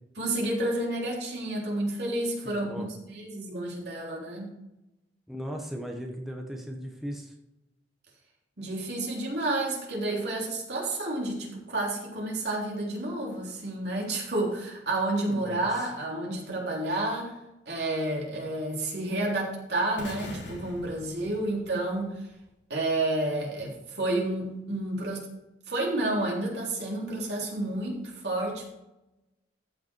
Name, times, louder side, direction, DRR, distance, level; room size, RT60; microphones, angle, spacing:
voice 1, 0.2-4.5 8.6-17.4 17.7-22.2 22.7-25.3 25.7-28.7, right 2 dB, 65° right, -2 dB, 3.5 m, -30 dB
voice 2, 2.4-2.9 5.3-7.3 15.3-15.7, equal, ahead, 0 dB, 1.1 m, -37 dB
sound 1, 20.0-22.1, left 1 dB, 80° left, 3.1 m, -42 dB
14.5 x 5.8 x 4.5 m, 0.92 s
head